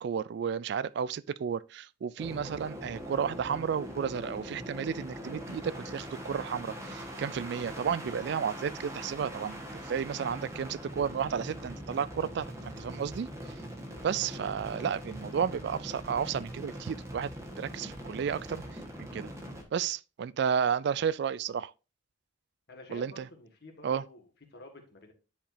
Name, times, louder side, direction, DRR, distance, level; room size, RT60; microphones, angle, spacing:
voice 1, 0.0-13.6 14.0-19.3 19.7-21.7 22.9-23.3 23.8-24.0, right 7 dB, 60° right, 0.3 m, -32 dB
sound 1, 2.2-19.6, equal, 15° right, 1.3 m, -42 dB
voice 2, 22.7-25.1, left 2 dB, 55° left, 1.9 m, -51 dB
10.0 x 5.0 x 2.6 m
head